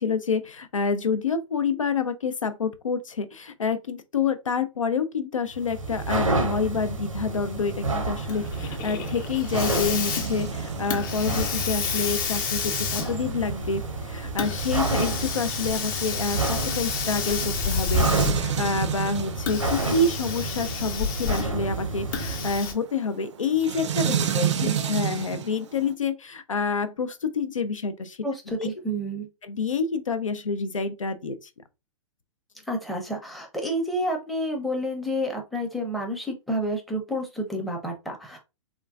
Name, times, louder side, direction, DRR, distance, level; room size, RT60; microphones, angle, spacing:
voice 1, 0.0-24.1 24.6-28.2 28.6-28.7 29.4-31.5, left 5 dB, 80° left, 0.5 m, -28 dB
sound 1, 5.5-22.7, right 2 dB, 90° right, 0.8 m, -30 dB
sound 2, 8.2-25.9, right 9 dB, 65° right, 0.5 m, -33 dB
Hiss, 8.3-18.6 19.3-21.6 22.1-22.7, left 6 dB, 40° left, 0.7 m, -30 dB
voice 2, 24.1-24.8 28.2-29.3 32.7-38.4, equal, ahead, 0.6 m, -30 dB
3.7 x 2.2 x 2.3 m
figure-of-eight pair, 115°, 16 cm